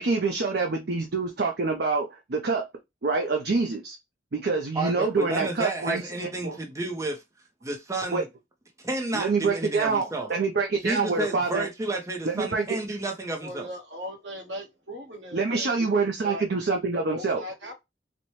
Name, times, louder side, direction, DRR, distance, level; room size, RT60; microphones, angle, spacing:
voice 1, 0.0-2.6 3.0-4.0 4.3-6.6 8.1-8.2 9.1-11.7 12.2-12.7 15.3-17.4, right 4 dB, 60° right, 0.6 m, -26 dB
voice 2, 4.8-7.2 7.6-8.3 8.8-10.3 10.8-13.7, right 2 dB, 20° right, 0.6 m, -31 dB
voice 3, 13.4-16.4 17.1-17.7, equal, 80° right, 1.4 m, -39 dB
4.2 x 2.1 x 3.1 m
head